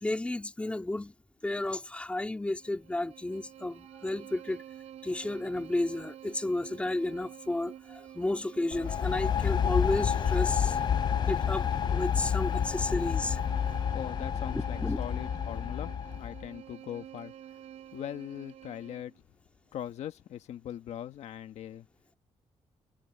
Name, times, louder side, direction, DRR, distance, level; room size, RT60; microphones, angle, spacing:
voice 1, 0.0-1.1 1.4-4.6 5.0-10.8 11.3-13.4 14.5-15.0, left 2 dB, 10° left, 2.4 m, -32 dB
Bowed string instrument, 2.5-19.2, right 10 dB, 75° right, 6.2 m, -48 dB
sound 1, 8.7-16.5, left 8 dB, 40° left, 0.4 m, -29 dB
voice 2, 13.9-17.6 17.9-19.1 19.7-21.9, left 10 dB, 85° left, 1.5 m, -41 dB
cardioid pair, 135°, 11 cm